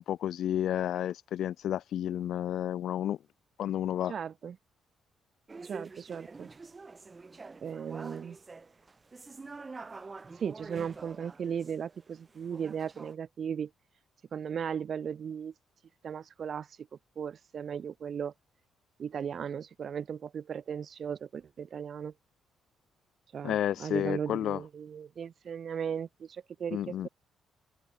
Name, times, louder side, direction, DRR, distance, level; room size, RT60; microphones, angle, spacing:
voice 1, 0.0-3.2 3.6-4.1 23.4-24.6 26.7-27.1, left 11 dB, 70° left, 1.4 m, -31 dB
voice 2, 4.1-4.6 5.6-6.5 7.6-8.4 10.4-13.7 14.3-15.5 16.0-16.7 17.2-18.3 19.0-22.1 23.3-27.1, right 7 dB, 55° right, 1.2 m, -36 dB
sound 1, 5.5-13.1, right 4 dB, 30° right, 7.2 m, -47 dB
open air
cardioid pair, 90°, 0 cm